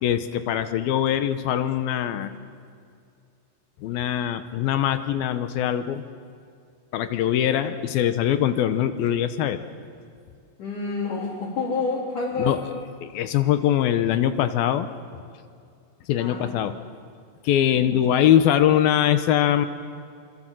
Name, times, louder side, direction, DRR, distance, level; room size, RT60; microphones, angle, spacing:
voice 1, 0.0-2.3 3.8-6.0 6.9-9.6 12.4-12.6 13.0-14.9 16.1-16.8 17.4-19.7, left 10 dB, 75° left, 11 dB, 2.5 m, -22 dB
voice 2, 10.6-12.6 16.2-16.6 17.7-18.2, left 3 dB, 50° left, -5 dB, 5.1 m, -29 dB
26.5 x 26.5 x 7.7 m, 2.3 s
omnidirectional pair, 4.9 m